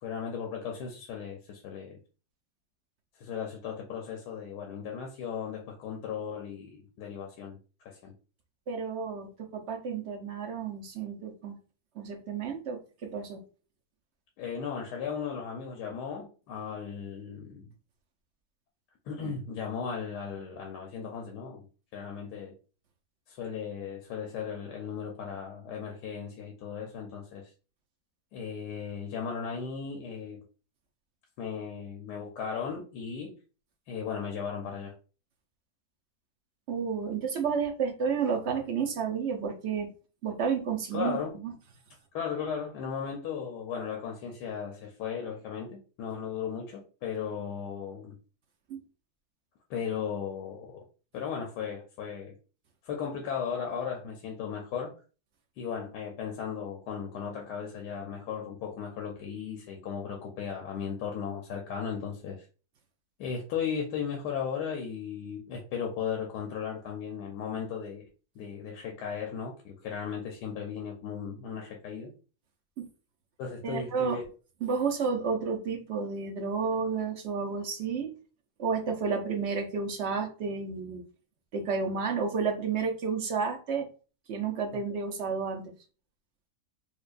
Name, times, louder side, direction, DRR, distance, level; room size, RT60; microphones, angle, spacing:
voice 1, 0.0-2.0 3.1-7.6 7.8-8.1 14.4-17.7 19.1-21.7 21.9-22.5 23.3-27.5 28.3-30.4 31.4-33.3 33.9-35.0 40.9-41.4 42.1-48.2 49.7-50.8 51.1-52.4 52.8-54.9 55.6-62.5 63.2-68.1 68.3-72.1 73.4-74.2, left 7 dB, 85° left, 1.2 m, -36 dB
voice 2, 8.7-11.5 12.0-13.4 36.7-39.9 40.2-41.2 41.4-41.5 48.7-48.8 72.8-72.9 73.6-74.2 74.6-78.1 78.6-81.0 81.5-83.9 84.3-85.7, right 5 dB, 60° right, 0.7 m, -31 dB
4.5 x 2.4 x 2.4 m
omnidirectional pair, 1.7 m